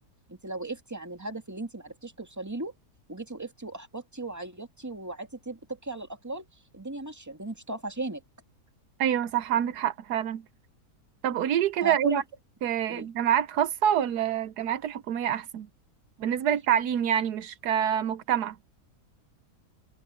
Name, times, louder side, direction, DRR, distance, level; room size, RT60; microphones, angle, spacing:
voice 1, 0.3-2.7 3.1-6.5 6.7-8.2 11.8-12.2 12.9-13.1, right 2 dB, 10° right, 2.0 m, -37 dB
voice 2, 9.0-10.4 11.2-12.2 12.6-15.7 16.2-18.6, right 10 dB, 80° right, 1.3 m, -26 dB
omnidirectional pair, 1.7 m